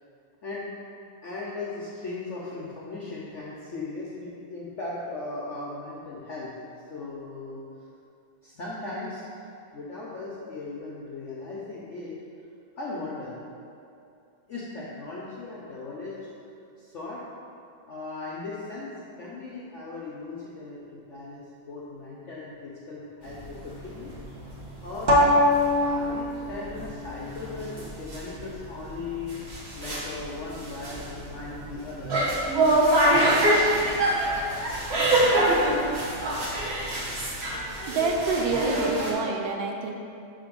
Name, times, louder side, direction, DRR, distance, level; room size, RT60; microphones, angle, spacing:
voice 1, 1.2-6.5 6.9-7.6 8.4-9.2 9.7-12.1 12.8-13.3 14.5-16.1 16.8-17.2 17.9-18.9 19.2-24.1 24.8-25.1 25.8-29.4 29.7-32.2 33.0-34.0, left 3 dB, 70° left, -6 dB, 0.7 m, -37 dB
sound 1, 23.3-39.1, right 1 dB, 45° right, 0.9 m, -25 dB
voice 2, 37.9-39.9, right 3 dB, 80° right, 2 dB, 1.4 m, -27 dB
5.7 x 3.9 x 5.1 m, 2.6 s
omnidirectional pair, 2.2 m